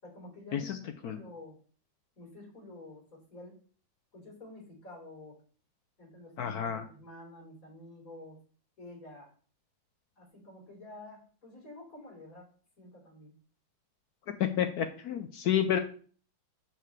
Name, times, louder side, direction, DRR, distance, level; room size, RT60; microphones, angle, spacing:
voice 1, 0.0-1.6 2.2-3.6 4.1-5.4 6.0-8.4 8.8-9.3 10.2-12.5 12.8-13.3, left 2 dB, 45° left, -3 dB, 4.4 m, -49 dB
voice 2, 6.4-6.8 14.6-15.8, left 9 dB, 70° left, 8 dB, 1.0 m, -30 dB
11.5 x 4.4 x 3.3 m, 0.42 s
omnidirectional pair, 2.1 m